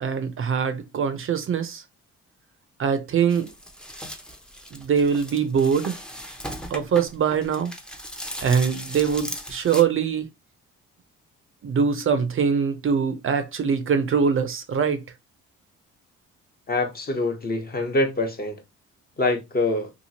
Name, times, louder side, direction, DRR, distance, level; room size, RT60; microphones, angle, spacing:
voice 1, 0.0-1.8 2.8-3.5 4.7-6.0 6.7-7.7 8.4-10.3 11.6-15.0, right 6 dB, 45° right, 0.5 m, -23 dB
sound 1, 3.3-9.8, equal, 5° left, 0.5 m, -38 dB
voice 2, 16.7-18.6 19.2-19.9, left 2 dB, 30° left, 0.8 m, -25 dB
2.9 x 2.4 x 2.7 m
cardioid pair, 90°, 30 cm